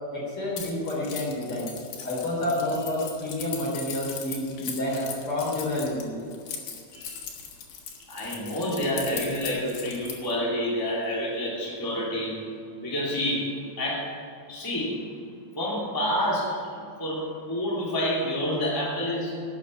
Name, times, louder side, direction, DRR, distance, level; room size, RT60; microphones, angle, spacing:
voice 1, 0.1-1.7 2.0-6.2 6.9-7.2, left 1 dB, 40° left, -4 dB, 4.3 m, -29 dB
Keys jangling, 0.6-10.3, left 7 dB, 85° left, 3.5 m, -38 dB
voice 2, 8.1-12.5 12.8-14.1 14.5-15.0 15.6-16.7 17.0-19.4, equal, 5° left, -6 dB, 2.4 m, -28 dB
12.0 x 8.8 x 8.3 m, 2.4 s
omnidirectional pair, 4.2 m